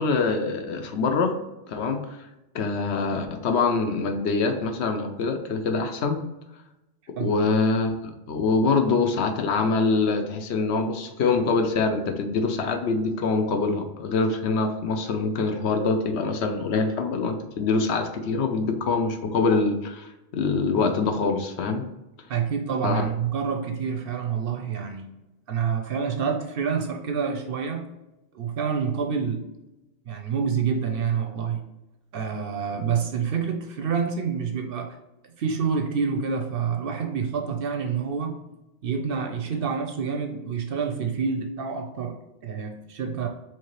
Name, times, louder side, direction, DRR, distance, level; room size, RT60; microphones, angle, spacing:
voice 1, 0.0-1.4 1.7-2.3 2.5-6.2 7.2-21.8 22.8-23.0, left 4 dB, 70° left, 6 dB, 0.8 m, -24 dB
voice 2, 22.3-25.1 25.5-27.9 28.3-29.5 30.1-31.6 32.1-35.0 35.2-38.4 38.8-42.2 42.4-43.3, right 6 dB, 60° right, 4 dB, 0.6 m, -27 dB
4.7 x 3.0 x 3.0 m, 0.97 s
omnidirectional pair, 1.2 m